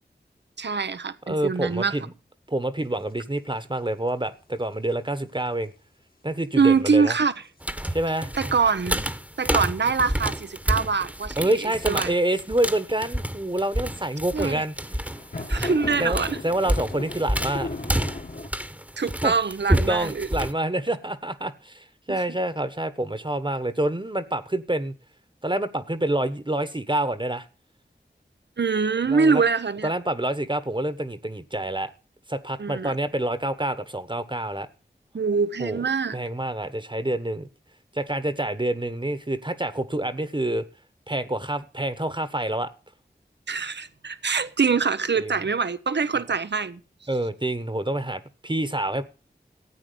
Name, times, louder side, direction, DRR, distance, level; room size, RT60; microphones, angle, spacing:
voice 1, 0.6-1.9 6.6-7.3 8.4-9.0 9.4-12.1 14.3-14.6 15.5-16.4 19.0-20.3 22.1-22.2 28.6-29.9 32.6-32.9 35.1-36.2 43.5-46.8, right 5 dB, 70° right, 0.8 m, -24 dB
voice 2, 1.3-2.1 2.5-5.7 6.2-7.1 7.9-8.3 11.4-14.7 16.0-17.7 19.2-19.3 19.7-24.9 25.4-27.4 29.0-29.4 29.8-31.9 32.3-34.7 35.6-35.8 36.1-37.5 37.9-40.6 41.1-42.7 45.1-45.3 47.1-49.0, right 1 dB, 25° right, 1.3 m, -27 dB
sound 1, 7.1-7.2 9.8-9.9 12.5-12.8 14.2-14.3 14.8-18.5, left 2 dB, 55° left, 2.0 m, -35 dB
sound 2, 7.6-20.5, equal, 5° right, 1.3 m, -29 dB
14.5 x 8.8 x 6.9 m
wide cardioid pair, 40°, 19 cm